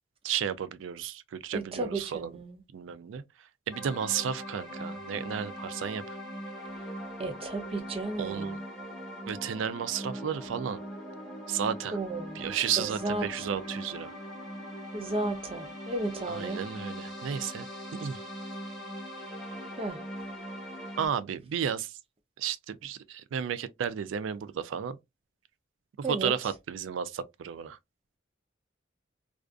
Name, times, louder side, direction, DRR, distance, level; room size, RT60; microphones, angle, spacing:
voice 1, 0.2-2.3 2.7-3.2 3.7-6.0 8.2-8.6 9.3-10.8 11.5-12.0 12.4-14.1 16.3-17.6 18.0-18.2 21.0-21.9 22.4-25.0 26.1-27.8, right 8 dB, 85° right, 0.3 m, -33 dB
voice 2, 1.5-2.6 7.2-8.6 11.9-12.4 12.8-13.5 14.9-16.6 19.7-20.0 26.0-26.3, right 2 dB, 30° right, 0.5 m, -34 dB
sound 1, 3.7-21.1, equal, ahead, 1.0 m, -41 dB
2.4 x 2.3 x 2.3 m
head